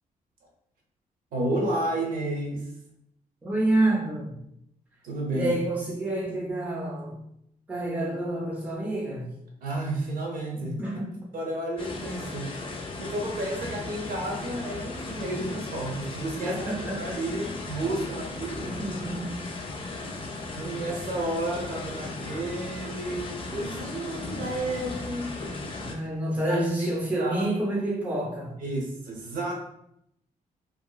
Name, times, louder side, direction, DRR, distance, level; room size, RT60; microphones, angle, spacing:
voice 1, 1.3-2.7 5.0-5.6 9.6-10.8 11.3-12.5 13.0-18.7 20.6-25.4 26.5-26.9 27.2-27.5 28.6-29.5, right 1 dB, 85° right, 0 dB, 0.8 m, -31 dB
voice 2, 3.4-4.4 5.3-7.3 7.7-9.3 10.6-11.2 16.4-17.2 18.6-19.4 25.8-28.6, right 1 dB, 10° right, -4 dB, 0.7 m, -28 dB
sound 1, 11.8-26.0, left 2 dB, 40° left, 0.4 m, -36 dB
2.9 x 2.8 x 2.3 m, 0.76 s
wide cardioid pair, 170°, 14 cm